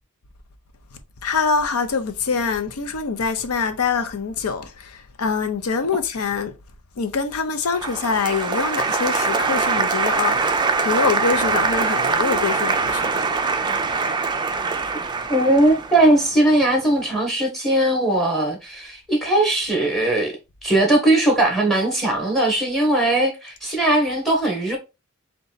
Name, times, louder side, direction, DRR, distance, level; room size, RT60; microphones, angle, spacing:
voice 1, 1.2-6.5 7.0-13.3, left 5 dB, 80° left, 0.6 m, -24 dB
Applause, 7.8-16.8, right 4 dB, 20° right, 0.4 m, -23 dB
voice 2, 15.3-20.3 20.6-24.8, right 1 dB, ahead, 1.1 m, -19 dB
4.0 x 2.3 x 3.9 m
head